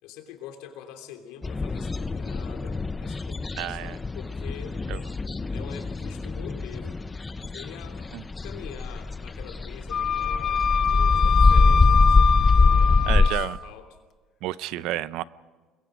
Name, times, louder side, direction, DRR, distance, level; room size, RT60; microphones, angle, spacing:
voice 1, 0.0-4.8 5.5-7.0 7.4-8.1 8.4-12.3 12.6-14.0, left 9 dB, 85° left, 5 dB, 3.2 m, -44 dB
sound 1, 1.4-13.3, left 3 dB, 15° left, 0.6 m, -23 dB
voice 2, 3.6-4.0 4.9-5.0 8.1-8.2 13.1-13.6 14.4-15.2, right 15 dB, 70° right, 17 dB, 0.6 m, -30 dB
Wind instrument woodwind instrument, 9.9-13.5, left 7 dB, 40° left, 0.9 m, -24 dB
29.0 x 22.0 x 5.1 m, 1.3 s
cardioid pair, 130°, 0 cm